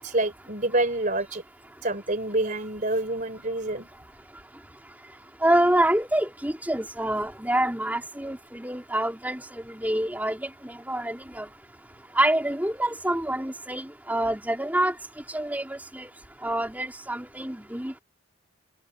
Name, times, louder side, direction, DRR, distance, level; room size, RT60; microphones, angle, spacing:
voice 1, 0.0-1.4 1.8-3.9, right 2 dB, 40° right, 3.8 m, -27 dB
voice 2, 5.4-9.4 9.7-11.5 12.2-14.9 15.3-16.1 16.4-18.0, right 1 dB, 10° right, 3.7 m, -26 dB
head